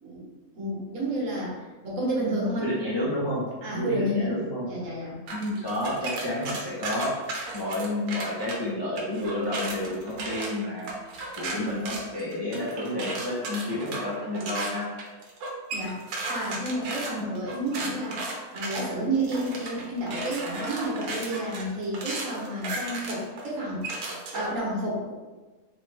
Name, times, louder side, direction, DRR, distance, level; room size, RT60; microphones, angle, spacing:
voice 1, 0.5-2.7 3.6-4.3 4.6-5.2 15.7-16.0 16.3-18.2 18.5-25.1, right 1 dB, 60° right, -4 dB, 1.3 m, -30 dB
voice 2, 2.6-3.5 3.7-4.7 5.3-7.2 7.5-11.0 11.3-14.9 17.1-17.2, left 1 dB, 30° left, -8 dB, 0.4 m, -30 dB
sound 1, 5.3-8.6 9.0-24.6, right 2 dB, 80° right, 1.2 m, -35 dB
3.2 x 3.2 x 3.2 m, 1.2 s
omnidirectional pair, 1.6 m